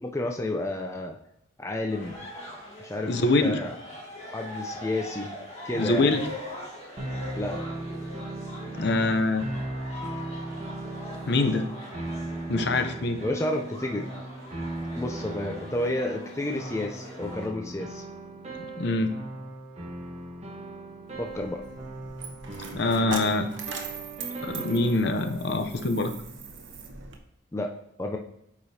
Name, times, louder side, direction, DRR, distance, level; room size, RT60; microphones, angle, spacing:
voice 1, 0.0-1.2 1.6-2.1 2.8-3.1 3.4-3.7 4.2-5.3 5.6-6.1 7.4-7.6 13.2-14.1 15.0-18.0 21.2-21.6 27.5-27.7 28.0-28.2, left 1 dB, 15° left, 3 dB, 0.4 m, -30 dB
sound 1, 1.9-17.5, left 1 dB, 30° left, 1.8 m, -42 dB
voice 2, 3.0-3.6 5.7-6.3 8.8-9.4 11.3-11.7 12.5-13.2 18.6-19.1 22.7-23.5 24.4-26.1, left 2 dB, 55° left, 7 dB, 0.6 m, -24 dB
sound 2, 7.0-26.2, right 2 dB, 30° right, 1.0 m, -38 dB
Coin (dropping), 21.1-27.2, right 5 dB, 70° right, 0.9 m, -40 dB
8.7 x 4.9 x 2.8 m, 0.82 s
head